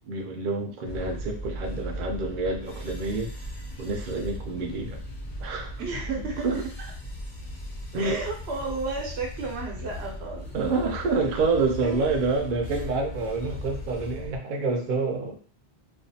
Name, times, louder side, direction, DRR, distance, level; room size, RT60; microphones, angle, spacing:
voice 1, 0.1-3.3 3.8-5.0 5.4-5.7 6.4-6.6 7.9-8.2 10.5-15.3, right 3 dB, 60° right, 2 dB, 0.7 m, -27 dB
sound 1, 0.8-14.4, left 1 dB, 55° left, 0.8 m, -37 dB
voice 2, 5.8-6.7 8.0-10.6 11.1-11.2 11.8-12.1, right 4 dB, 85° right, 1 dB, 1.0 m, -33 dB
2.4 x 2.3 x 2.6 m, 0.41 s
omnidirectional pair, 1.1 m